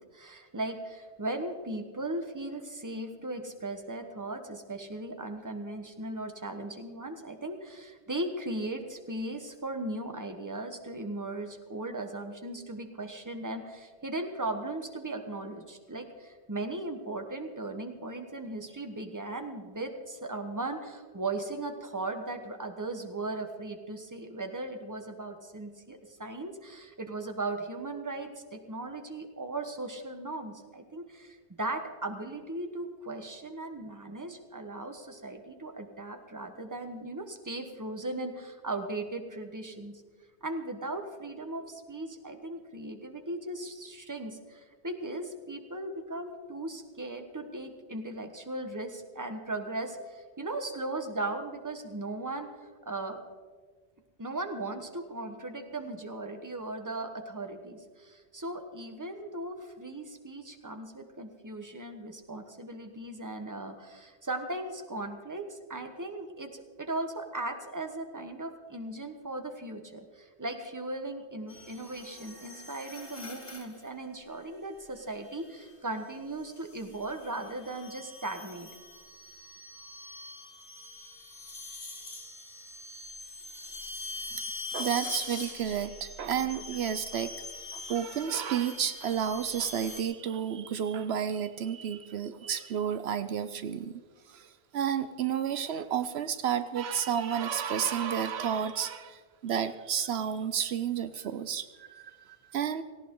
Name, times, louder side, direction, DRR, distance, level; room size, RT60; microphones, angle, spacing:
voice 1, 0.0-40.0 40.4-52.5 52.8-53.2 54.2-78.7, right 2 dB, 20° right, 6 dB, 1.2 m, -37 dB
sound 1, 71.5-73.9 75.2-75.6 76.5-90.0, left 3 dB, 30° left, 2.2 m, -43 dB
voice 2, 84.7-87.3 87.7-93.9 94.3-102.8, right 8 dB, 75° right, 12 dB, 0.9 m, -31 dB
18.0 x 16.5 x 3.8 m, 1.5 s
omnidirectional pair, 1.1 m